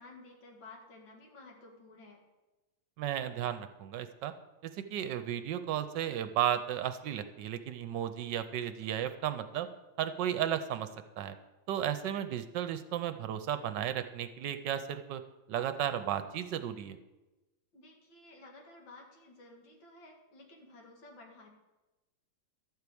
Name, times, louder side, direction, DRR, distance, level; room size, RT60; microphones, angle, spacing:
voice 1, 0.0-2.2 17.7-21.5, left 2 dB, 85° left, 0 dB, 2.6 m, -54 dB
voice 2, 3.0-4.3 4.6-9.7 10.0-10.9 11.2-11.3 11.7-15.2 15.5-17.0, right 10 dB, 75° right, 10 dB, 1.3 m, -34 dB
12.0 x 4.7 x 8.5 m, 1.1 s
omnidirectional pair, 2.0 m